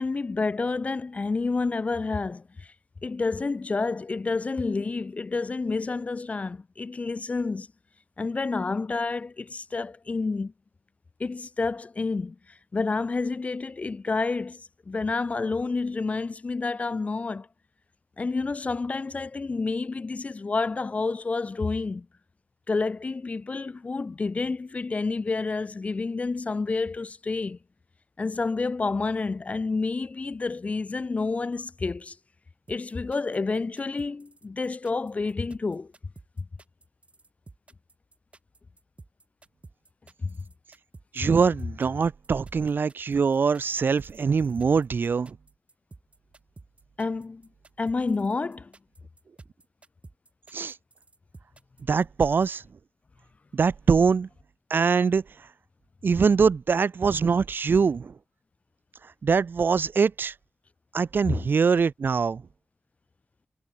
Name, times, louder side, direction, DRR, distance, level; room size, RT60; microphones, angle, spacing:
voice 1, 0.0-2.7 3.0-7.7 8.2-10.5 11.2-12.4 12.7-17.5 18.2-22.1 22.7-27.6 28.2-32.2 32.7-35.9 40.2-40.4 47.0-47.4 47.8-48.7, left 3 dB, 30° left, 0.6 m, -29 dB
sound 1, 32.7-52.5, right 3 dB, 30° right, 2.1 m, -51 dB
voice 2, 41.1-45.4 50.5-50.7 51.9-52.6 53.5-54.3 54.7-55.2 56.0-58.1 59.2-60.3 60.9-62.4, right 5 dB, 50° right, 0.7 m, -23 dB
wide cardioid pair, 160°, 4 cm